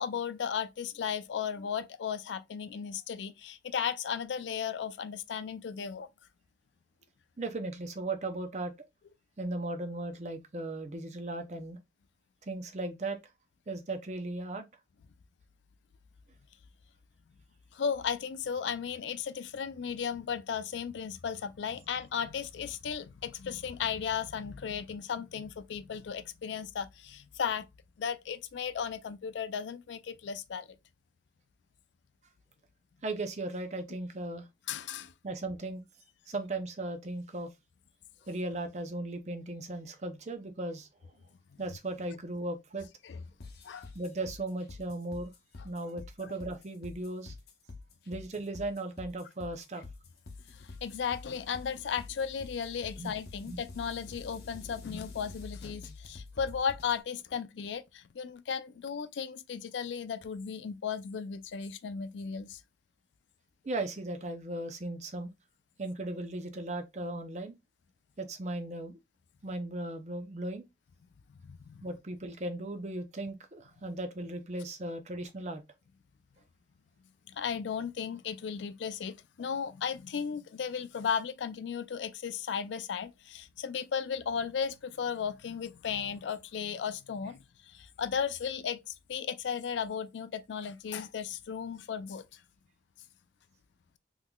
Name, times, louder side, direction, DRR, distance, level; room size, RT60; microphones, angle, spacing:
voice 1, 0.0-6.1 17.7-27.7 28.0-30.7 34.7-35.1 43.0-43.2 43.6-43.9 46.2-46.3 50.5-62.6 71.4-71.9 77.3-92.4, left 7 dB, 80° left, 0.4 m, -35 dB
voice 2, 7.4-8.7 9.4-11.8 12.4-13.2 13.7-14.7 33.0-34.5 35.2-35.8 36.3-37.5 38.3-40.9 41.6-42.9 43.9-45.3 45.6-47.4 48.1-49.8 53.0-53.2 53.5-53.6 63.6-65.3 65.8-67.5 68.2-69.0 69.4-70.6 71.8-75.6, right 2 dB, 40° right, 0.5 m, -37 dB
sound 1, 43.4-57.0, left 3 dB, 55° left, 0.7 m, -47 dB
3.7 x 3.1 x 2.3 m
head